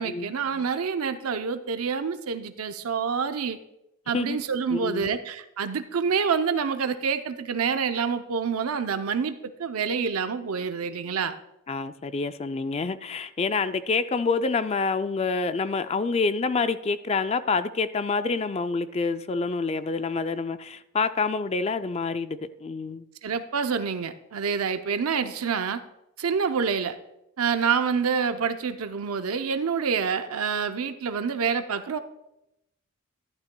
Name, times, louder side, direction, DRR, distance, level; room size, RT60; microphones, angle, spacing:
voice 1, 0.0-3.6 4.1-11.3 23.2-25.8 26.2-27.0 27.4-32.0, right 6 dB, 85° right, 9 dB, 0.6 m, -27 dB
voice 2, 4.7-5.1 11.7-23.0, left 4 dB, 30° left, 11 dB, 0.3 m, -27 dB
11.5 x 11.5 x 2.2 m, 0.87 s
head